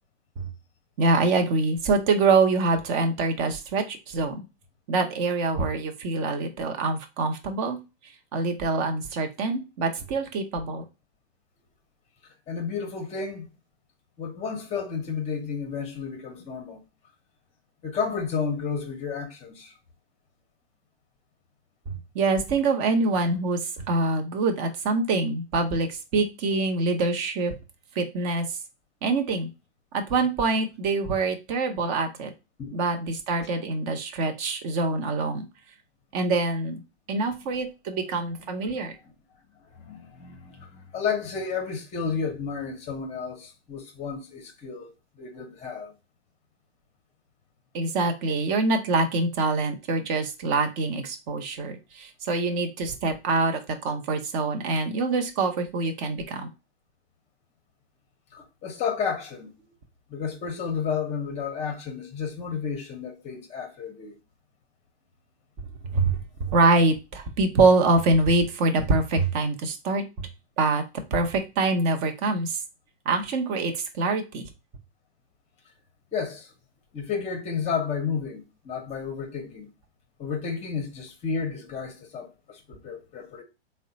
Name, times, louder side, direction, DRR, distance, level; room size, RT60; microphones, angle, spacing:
voice 1, 1.0-4.4 4.9-7.8 8.3-10.8 21.9-27.5 28.0-28.5 29.0-29.5 29.9-32.3 32.7-35.4 36.1-36.8 37.1-38.9 47.7-56.5 65.9-70.3 70.6-70.8 71.1-72.6 73.1-74.5, right 3 dB, 35° right, 0.7 m, -25 dB
voice 2, 12.5-13.5 14.2-16.8 17.8-19.7 32.6-32.8 38.4-38.5 39.8-44.9 45.2-45.9 58.3-59.5 60.1-64.1 76.1-76.5 76.9-79.7 80.2-83.4, left 6 dB, 20° left, 0.7 m, -32 dB
3.7 x 2.2 x 3.8 m
hypercardioid pair, 130°, 33 cm